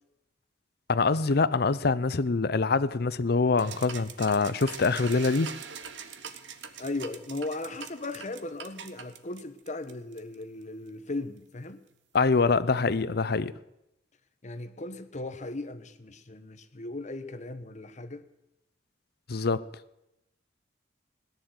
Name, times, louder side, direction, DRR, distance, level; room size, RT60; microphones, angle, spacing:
voice 1, 0.9-5.5 12.1-13.5 19.3-19.7, left 4 dB, 60° left, 0.6 m, -25 dB
sound 1, 3.6-10.4, right 7 dB, 80° right, 1.2 m, -43 dB
voice 2, 6.8-11.8 14.4-18.2, left 2 dB, 40° left, 1.0 m, -37 dB
17.0 x 10.5 x 7.9 m
head